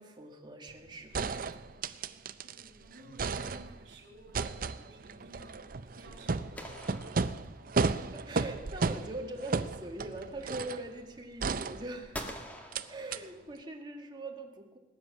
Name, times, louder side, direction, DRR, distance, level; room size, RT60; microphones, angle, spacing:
voice 1, 0.0-1.9 8.1-12.2 12.9-14.8, right 2 dB, 25° right, 3 dB, 1.8 m, -42 dB
sound 1, 0.7-0.8 1.1-2.7 3.0-3.9 4.3-10.9 11.4-12.3 12.7-12.8 13.1-13.2, right 4 dB, 50° right, 0.6 m, -34 dB
voice 2, 2.4-7.6, equal, 65° right, 2 dB, 4.4 m, -55 dB
sound 2, 6.6-8.0 12.1-13.7, equal, 10° left, 1.7 m, -45 dB
19.5 x 9.7 x 7.2 m, 1.1 s
head